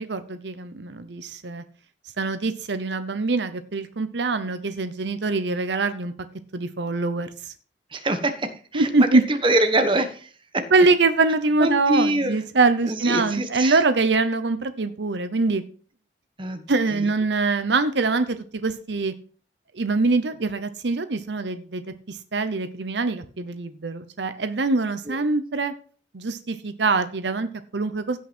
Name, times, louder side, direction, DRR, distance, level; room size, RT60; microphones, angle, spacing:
voice 1, 0.0-1.6 2.2-6.1 6.5-7.3 8.7-9.2 10.7-15.6 16.7-19.1 19.7-21.8 22.1-25.7 26.1-28.2, right 3 dB, 70° right, 11 dB, 0.8 m, -23 dB
voice 2, 7.9-10.7 11.6-12.4 12.8-13.8 16.4-16.6 16.9-17.0 25.1-25.2, right 1 dB, 30° right, 8 dB, 1.2 m, -24 dB
16.5 x 6.0 x 4.4 m, 0.42 s
head